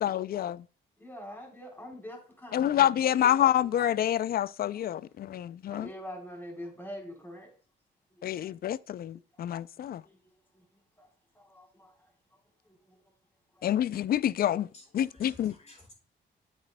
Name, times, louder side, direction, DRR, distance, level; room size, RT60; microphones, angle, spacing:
voice 1, 0.0-0.6 2.5-5.9 8.2-10.0 13.6-14.7 14.9-15.5, left 11 dB, 50° left, 0.4 m, -27 dB
voice 2, 1.0-2.8 5.7-7.5 8.1-8.5 9.3-9.4 10.0-10.2 10.5-10.7 11.0-11.1 11.3-12.1 12.6-13.0 13.5-13.7, equal, 10° left, 3.9 m, -45 dB
voice 3, 14.7-15.9, left 2 dB, 35° left, 4.3 m, -54 dB
9.0 x 8.5 x 2.2 m
cardioid pair, 90°, 20 cm